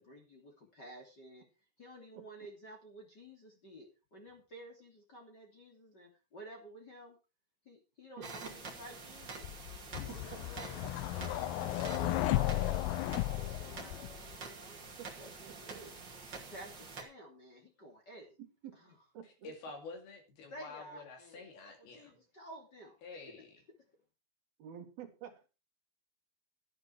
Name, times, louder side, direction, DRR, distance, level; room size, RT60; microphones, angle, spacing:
voice 1, 0.0-1.4 1.8-7.2 7.6-9.5 10.1-10.8 11.2-14.8 15.2-15.9 16.5-18.4 18.8-18.9 19.4-19.5 20.5-21.4 21.8-23.0, right 1 dB, 25° left, 2.8 m, -52 dB
sound 1, 8.2-17.0, right 4 dB, 30° right, 2.3 m, -47 dB
voice 2, 8.2-8.5 10.1-10.9 15.0-15.1 18.4-18.8 19.1-19.3 24.6-25.5, right 9 dB, 60° right, 3.4 m, -49 dB
sound 2, 9.4-14.4, left 15 dB, 85° left, 2.3 m, -34 dB
voice 3, 19.2-22.2 23.0-23.6, left 3 dB, 55° left, 4.0 m, -49 dB
13.0 x 11.0 x 4.6 m
omnidirectional pair, 5.6 m